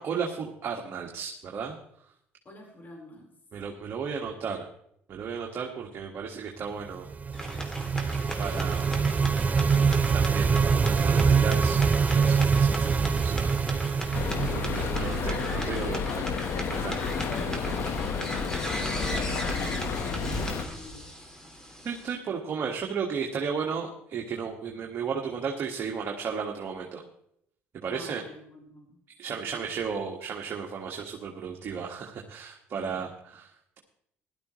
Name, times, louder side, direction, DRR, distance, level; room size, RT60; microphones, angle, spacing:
voice 1, 0.0-1.7 3.5-4.7 5.1-7.1 8.4-9.0 10.1-11.8 12.1-13.5 14.5-16.3 16.7-17.3 17.7-17.8 21.8-27.0 27.8-28.2 29.2-33.8, right 6 dB, 50° right, 0 dB, 1.8 m, -34 dB
voice 2, 2.4-3.3 14.7-15.2 17.8-21.1 27.9-29.7 32.9-33.0, left 1 dB, 35° left, -1 dB, 4.5 m, -48 dB
sound 1, 7.0-15.7, right 5 dB, 30° right, 0.4 m, -24 dB
sound 2, 7.3-22.1, equal, 10° left, 2.8 m, -37 dB
sound 3, 14.1-20.6, left 5 dB, 55° left, 1.3 m, -31 dB
16.0 x 12.0 x 3.2 m, 0.71 s
supercardioid pair, 80°, 5 cm